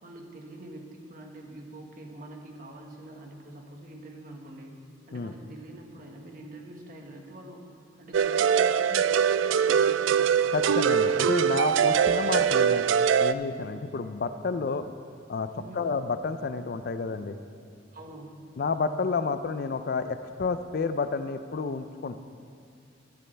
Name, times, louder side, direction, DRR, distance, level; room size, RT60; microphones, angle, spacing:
voice 1, 0.0-4.8 5.1-10.3 15.5-15.9 17.9-18.5, right 1 dB, 45° right, 1 dB, 1.5 m, -45 dB
sound 1, 8.1-13.3, right 7 dB, 90° right, 0.3 m, -23 dB
voice 2, 10.5-12.9 13.2-14.8 15.3-17.4 18.6-22.2, left 4 dB, 55° left, 11 dB, 0.4 m, -30 dB
13.5 x 12.0 x 3.3 m, 2.5 s
head